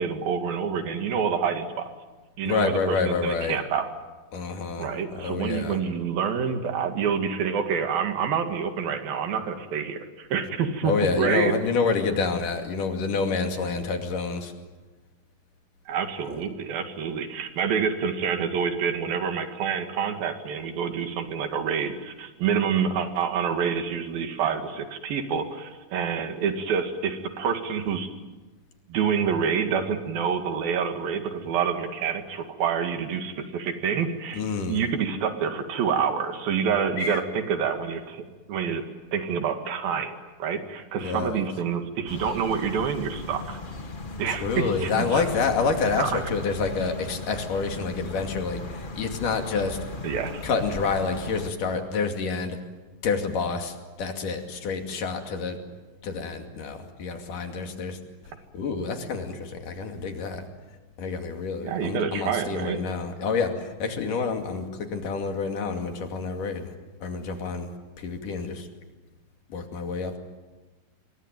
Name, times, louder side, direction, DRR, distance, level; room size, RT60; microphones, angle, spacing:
voice 1, 0.0-1.9 2.4-3.9 4.8-11.6 15.9-28.1 28.9-34.4 34.7-38.2 38.5-38.8 39.1-43.6 44.2-45.2 46.0-46.1 50.0-50.4 61.6-62.8, right 7 dB, 85° right, 6 dB, 3.9 m, -27 dB
voice 2, 2.5-3.6 4.3-4.9 5.2-5.8 10.8-14.5 34.3-34.8 37.0-37.2 41.0-41.4 44.3-49.8 50.4-52.6 53.0-55.6 56.0-58.0 58.5-60.4 61.0-64.7 64.9-66.7 67.0-67.7 68.0-68.7 69.5-70.2, left 4 dB, 65° left, 5 dB, 4.0 m, -28 dB
sound 1, 42.1-51.5, left 2 dB, 45° left, 0.6 m, -37 dB
27.0 x 23.0 x 9.1 m, 1.2 s
omnidirectional pair, 4.0 m